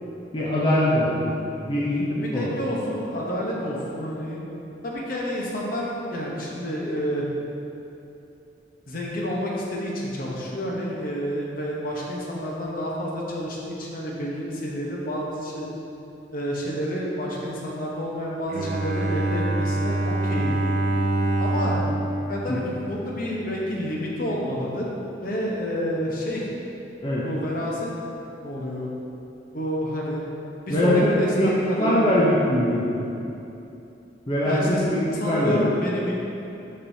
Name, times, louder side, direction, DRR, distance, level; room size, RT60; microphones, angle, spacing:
voice 1, 0.3-1.4 1.7-2.5 22.5-22.6 27.0-27.2 30.7-31.5 31.8-33.1 34.3-35.7, left 1 dB, 25° left, -7 dB, 0.6 m, -22 dB
voice 2, 2.1-4.4 4.8-7.3 8.9-15.7 16.3-20.5 21.4-21.8 22.3-24.9 25.2-26.5 27.2-27.9 28.4-28.9 29.5-30.2 30.7-32.0 34.4-34.8 35.2-36.1, equal, 50° left, -3 dB, 0.9 m, -29 dB
Bowed string instrument, 18.5-23.5, right 2 dB, 45° right, 0.5 m, -26 dB
7.1 x 5.3 x 2.7 m, 2.8 s
head